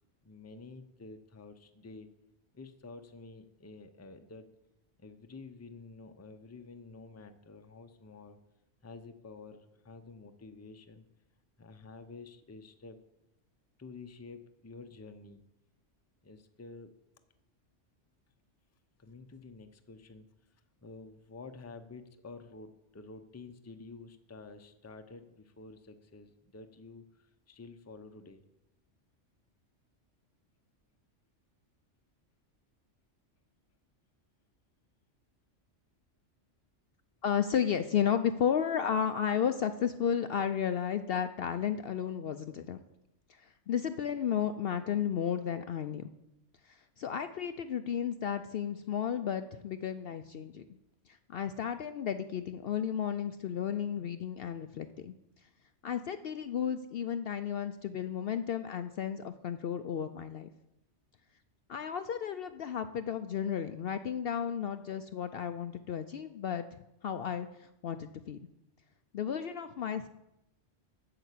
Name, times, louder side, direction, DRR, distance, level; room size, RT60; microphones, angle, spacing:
voice 1, 0.2-2.1 2.5-4.5 5.0-8.4 8.8-11.1 11.6-13.0 13.8-15.4 16.2-16.9 19.0-20.3 20.8-28.4, left 3 dB, 15° left, 8 dB, 0.6 m, -50 dB
voice 2, 37.2-42.8 43.3-46.1 46.6-50.6 51.1-55.1 55.8-60.5 61.7-68.4 69.1-70.1, left 8 dB, 60° left, 9 dB, 0.7 m, -33 dB
8.8 x 6.8 x 8.3 m, 0.88 s
omnidirectional pair, 1.3 m